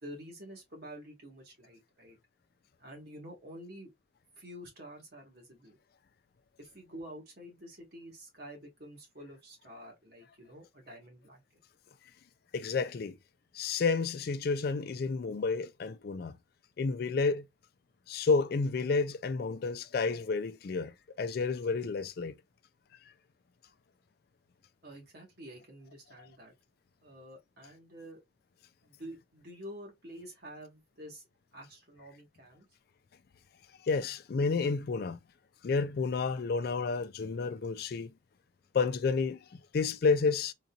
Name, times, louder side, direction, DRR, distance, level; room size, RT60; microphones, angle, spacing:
voice 1, 0.0-2.2 2.8-3.9 4.4-5.8 6.6-11.4 24.8-26.5 27.0-28.2 28.8-31.2 31.5-32.7, equal, 55° right, 1.7 m, -48 dB
voice 2, 12.5-13.2 13.5-16.3 16.8-17.5 18.1-22.3 26.2-26.3 33.8-35.2 35.6-38.1 38.7-40.5, left 4 dB, 50° left, 0.3 m, -30 dB
3.8 x 2.8 x 2.3 m
head